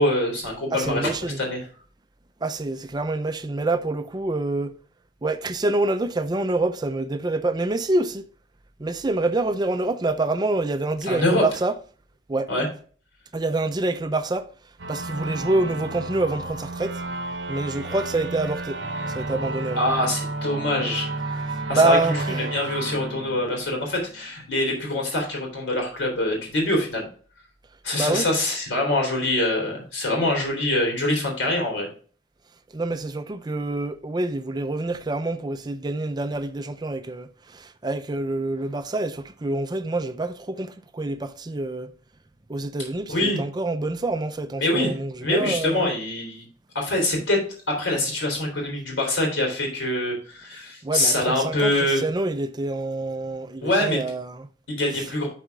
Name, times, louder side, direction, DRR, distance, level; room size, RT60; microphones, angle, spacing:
voice 1, 0.0-1.6 11.1-11.4 12.5-12.7 19.7-21.1 21.7-22.2 22.5-27.1 27.8-31.9 43.1-43.4 44.6-44.9 45.2-46.4 46.7-47.4 47.7-52.0 53.6-54.0 54.7-55.3, left 1 dB, 75° left, 3.5 m, -24 dB
voice 2, 0.7-1.4 2.4-4.7 5.2-8.3 8.8-11.7 12.3-12.5 13.3-14.5 14.9-17.0 17.5-18.8 19.1-19.8 21.7-22.4 27.9-28.3 32.7-41.9 42.5-45.9 50.8-54.5, right 2 dB, 20° right, 0.4 m, -26 dB
sound 1, 14.8-24.1, right 2 dB, 70° right, 0.8 m, -32 dB
12.0 x 4.2 x 3.5 m
head